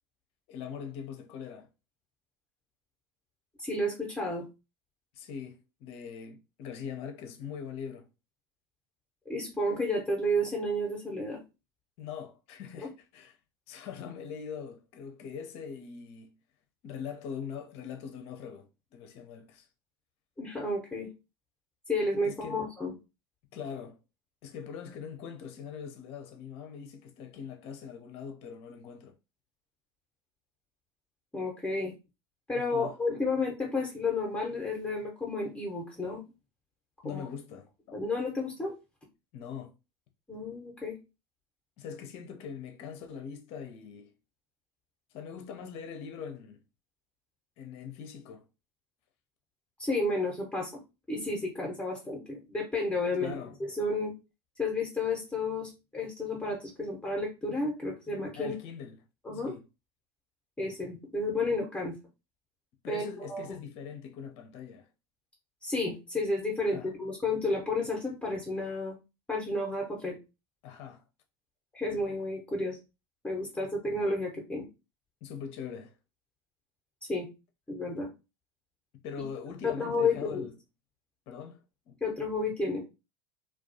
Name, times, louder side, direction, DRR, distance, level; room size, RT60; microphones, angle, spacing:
voice 1, 0.5-1.7 5.1-8.1 12.0-13.4 13.7-16.4 16.8-19.7 22.2-22.6 23.5-24.0 24.4-29.1 32.5-33.0 37.0-38.0 39.3-39.7 41.8-44.1 45.1-46.6 47.6-48.5 53.2-53.6 58.4-59.0 59.3-59.6 62.8-64.9 66.7-66.9 70.6-71.0 75.2-75.9 79.0-80.5 81.3-82.0, left 7 dB, 50° left, 0.5 m, -42 dB
voice 2, 3.6-4.5 9.3-11.4 20.4-21.1 21.9-22.9 31.3-31.9 32.5-36.3 37.0-37.2 37.9-38.7 40.3-41.0 49.8-50.8 51.1-54.1 54.6-58.5 59.2-59.5 60.6-62.0 62.9-63.6 65.6-69.0 69.3-70.2 71.7-72.8 73.2-74.6 77.1-77.3 77.7-78.1 79.6-80.4 82.0-82.8, left 2 dB, 10° left, 0.7 m, -31 dB
2.2 x 2.1 x 2.6 m
hypercardioid pair, 80°, 13 cm